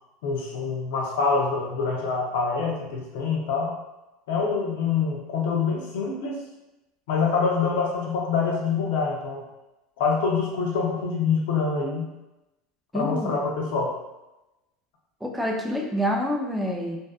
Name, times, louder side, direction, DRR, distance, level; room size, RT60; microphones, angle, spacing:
voice 1, 0.2-3.8 4.3-6.4 7.1-9.4 10.0-12.1 12.9-13.9, left 5 dB, 85° left, -1 dB, 0.6 m, -25 dB
voice 2, 12.9-13.4 15.2-17.0, equal, 5° right, -1 dB, 0.4 m, -27 dB
2.6 x 2.3 x 2.3 m, 0.97 s
supercardioid pair, 150°, 0 cm